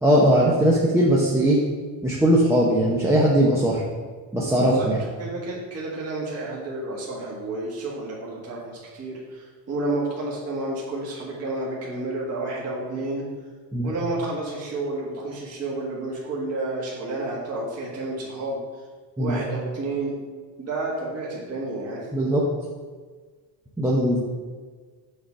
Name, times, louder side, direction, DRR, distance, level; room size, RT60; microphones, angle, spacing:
voice 1, 0.0-1.6 2.0-3.8 4.3-5.0 13.7-13.9 19.2-19.4 22.1-22.4 23.8-24.2, right 1 dB, 5° right, -5 dB, 0.7 m, -19 dB
voice 2, 4.5-4.9 5.2-13.2 13.8-18.6 19.2-20.2 20.6-22.1, right 2 dB, 35° right, -5 dB, 1.6 m, -30 dB
6.5 x 3.8 x 6.0 m, 1.5 s
cardioid pair, 155°, 41 cm